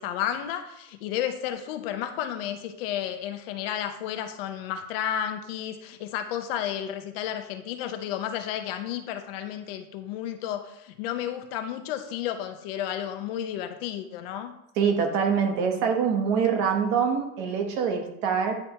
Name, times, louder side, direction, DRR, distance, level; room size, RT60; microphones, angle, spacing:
voice 1, 0.0-14.5, left 10 dB, 55° left, 8 dB, 0.7 m, -32 dB
voice 2, 14.8-18.5, right 6 dB, 40° right, 4 dB, 1.0 m, -24 dB
9.9 x 3.4 x 2.9 m, 0.82 s
supercardioid pair, 180°, 34 cm